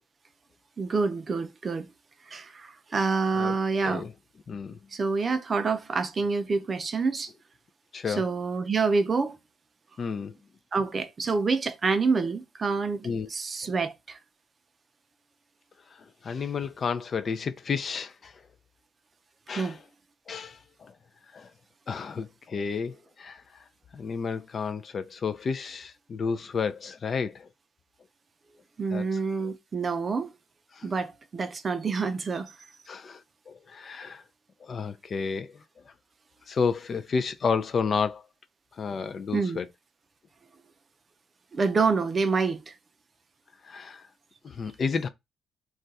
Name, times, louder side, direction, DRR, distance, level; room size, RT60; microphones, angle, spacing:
voice 1, 0.8-1.9 2.3-4.1 4.9-7.3 8.1-9.4 10.7-14.2 19.5-19.8 28.8-30.3 30.8-32.5 39.3-39.6 41.5-42.7, right 4 dB, 35° right, 0.5 m, -27 dB
voice 2, 4.5-4.8 7.9-8.2 10.0-10.3 13.0-13.3 16.2-18.3 19.5-19.7 20.3-20.9 21.3-21.5 21.9-23.4 23.9-27.5 28.9-29.0 30.8-30.9 32.9-33.2 33.5-34.2 34.6-35.6 36.5-38.2 38.8-39.7 43.7-44.0 44.4-45.1, left 5 dB, 45° left, 0.3 m, -31 dB
2.4 x 2.2 x 3.9 m
cardioid pair, 90°, 0 cm